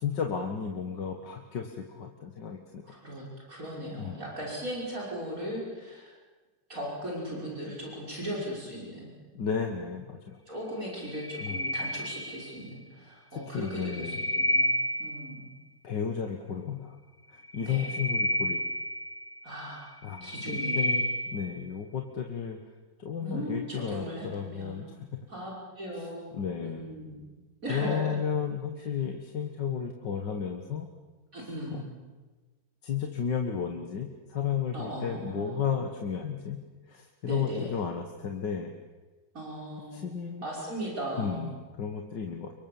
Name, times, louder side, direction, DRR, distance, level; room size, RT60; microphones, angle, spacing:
voice 1, 0.0-3.0 4.0-4.2 9.4-10.4 11.4-11.6 13.5-14.2 15.8-17.0 17.3-18.6 20.0-22.6 23.0-25.0 25.9-26.1 26.3-26.8 27.7-30.9 31.7-31.8 32.8-38.7 39.9-40.4 41.2-42.5, left 7 dB, 70° left, 4 dB, 2.2 m, -33 dB
voice 2, 2.8-6.2 6.7-9.1 10.5-15.5 17.6-17.9 19.4-19.9 20.2-21.2 23.2-25.0 25.3-27.2 27.6-28.2 31.3-31.9 34.7-35.7 37.2-37.7 39.3-40.0 40.4-41.5, equal, 45° right, -3 dB, 6.2 m, -38 dB
sound 1, 11.0-12.7 13.6-15.5 17.4-19.5 20.0-21.6, left 1 dB, 20° left, 1.7 m, -30 dB
29.0 x 24.0 x 7.2 m, 1.3 s
omnidirectional pair, 2.0 m